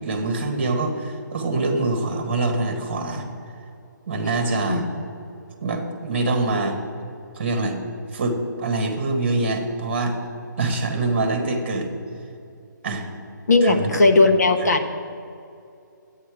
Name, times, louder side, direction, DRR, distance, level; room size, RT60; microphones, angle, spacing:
voice 1, 0.0-3.3 4.1-4.9 5.6-6.8 7.4-7.8 8.1-10.2 10.6-11.9 12.8-13.1 13.6-14.0, right 2 dB, 35° right, 4 dB, 1.6 m, -24 dB
voice 2, 13.5-14.8, left 3 dB, 55° left, 5 dB, 1.1 m, -17 dB
13.0 x 8.6 x 4.9 m, 2.5 s
hypercardioid pair, 180°, 11 cm